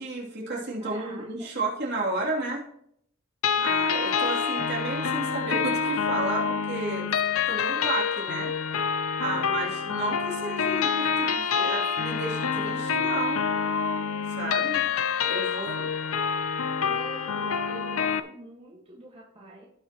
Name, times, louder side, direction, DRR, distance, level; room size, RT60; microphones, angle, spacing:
voice 1, 0.0-2.6 3.6-7.1 7.5-8.5 9.2-13.5 14.4-14.8 15.3-15.8, right 2 dB, 50° right, -3 dB, 2.9 m, -32 dB
voice 2, 0.8-1.5 3.5-3.9 9.3-9.7 14.6-14.9 15.5-16.1 16.8-19.7, right 1 dB, 25° right, -5 dB, 1.6 m, -46 dB
sound 1, 3.4-18.2, left 6 dB, 75° left, 0.6 m, -27 dB
17.0 x 5.7 x 3.0 m, 0.70 s
head